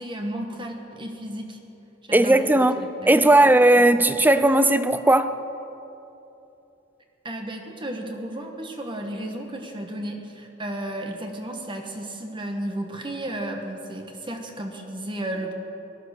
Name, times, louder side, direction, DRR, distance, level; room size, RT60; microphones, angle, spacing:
voice 1, 0.0-1.6 2.1-3.2 3.8-4.1 7.2-15.5, right 1 dB, 25° right, 1.3 m, -33 dB
voice 2, 2.1-2.8 3.1-5.4, right 1 dB, 10° right, 0.5 m, -17 dB
18.5 x 12.0 x 6.5 m
head